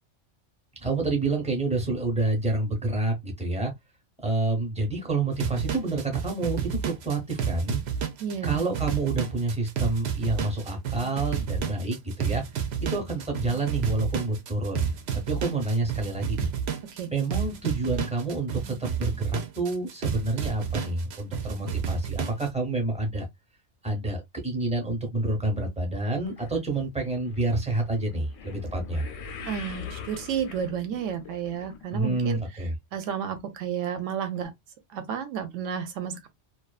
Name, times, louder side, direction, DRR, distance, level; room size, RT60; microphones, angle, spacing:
voice 1, 0.8-3.7 4.2-7.8 8.4-12.4 12.9-16.5 17.1-23.2 23.8-29.1 31.9-32.8, right 2 dB, 5° right, 0.7 m, -28 dB
sound 1, 5.3-22.5, right 8 dB, 65° right, 0.8 m, -31 dB
voice 2, 8.2-8.6 16.8-17.1 29.5-32.4 32.9-34.5 34.9-36.3, right 8 dB, 90° right, 1.0 m, -31 dB
sound 2, 26.3-32.7 32.9-33.4 34.0-34.1 34.4-34.5, left 6 dB, 90° left, 1.0 m, -43 dB
2.6 x 2.3 x 2.3 m
omnidirectional pair, 1.3 m